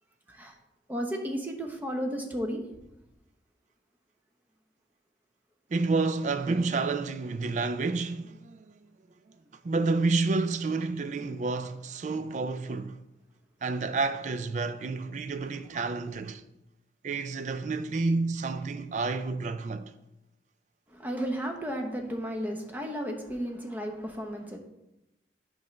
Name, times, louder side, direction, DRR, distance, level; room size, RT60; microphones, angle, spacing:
voice 1, 0.9-2.6 15.4-16.2 20.9-24.6, equal, 10° right, 0.8 m, -34 dB
voice 2, 5.7-8.8 9.6-13.0 13.6-16.4 17.0-19.9, right 3 dB, 40° right, 0.3 m, -29 dB
8.4 x 3.2 x 5.8 m
head